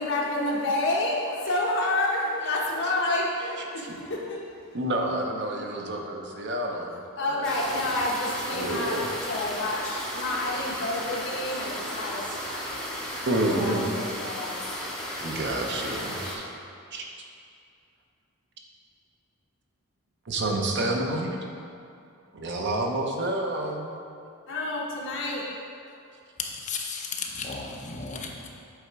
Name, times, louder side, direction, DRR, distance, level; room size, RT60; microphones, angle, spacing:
voice 1, 0.0-4.4 7.2-8.9 9.3-12.2 13.1-14.6 24.5-25.4, left 2 dB, 60° left, -3 dB, 1.1 m, -29 dB
voice 2, 4.7-7.9 8.5-9.1 12.1-12.6 12.9-13.9 15.2-16.4 16.9-17.0 20.3-21.4 22.3-23.9, right 1 dB, 55° right, 1 dB, 0.7 m, -29 dB
sound 1, 7.4-16.4, equal, 5° left, 0.9 m, -34 dB
voice 3, 26.4-28.5, left 5 dB, 35° left, 0 dB, 0.7 m, -34 dB
8.1 x 3.4 x 4.6 m, 2.5 s
head